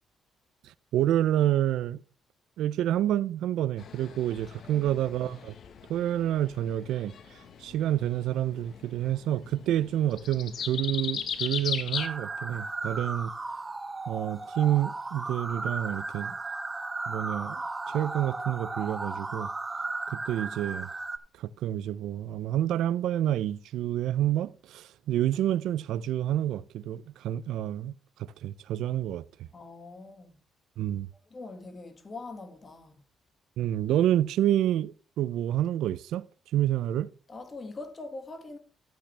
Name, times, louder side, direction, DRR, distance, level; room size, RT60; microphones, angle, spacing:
voice 1, 0.6-2.0 2.6-5.5 5.9-7.2 7.6-13.3 14.1-16.3 17.1-19.5 20.1-20.9 21.4-27.9 28.2-29.5 30.8-31.1 33.6-36.3 36.5-37.1, right 12 dB, 85° right, 0.5 m, -28 dB
sound 1, 3.8-12.1, left 7 dB, 60° left, 1.2 m, -38 dB
sound 2, 11.9-21.2, right 3 dB, 20° right, 1.0 m, -35 dB
voice 2, 29.5-30.3 31.3-33.0 37.3-38.6, left 3 dB, 35° left, 1.9 m, -43 dB
12.5 x 8.6 x 3.3 m
cardioid pair, 90°, 0 cm